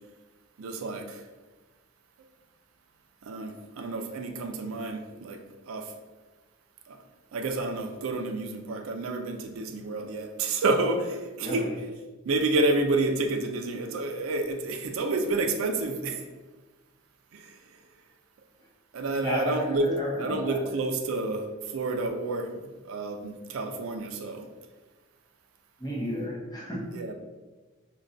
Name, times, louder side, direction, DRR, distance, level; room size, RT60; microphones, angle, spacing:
voice 1, 0.6-1.2 3.2-5.4 5.7-5.9 6.9-7.0 7.3-11.7 12.3-16.2 17.4-17.5 18.9-19.9 20.2-21.5 21.7-24.5 26.9-27.1, right 2 dB, 85° right, 5 dB, 0.4 m, -29 dB
voice 2, 11.4-11.7 19.2-20.6 25.8-26.9, equal, 20° left, -4 dB, 0.7 m, -32 dB
5.2 x 2.2 x 2.5 m, 1.3 s
head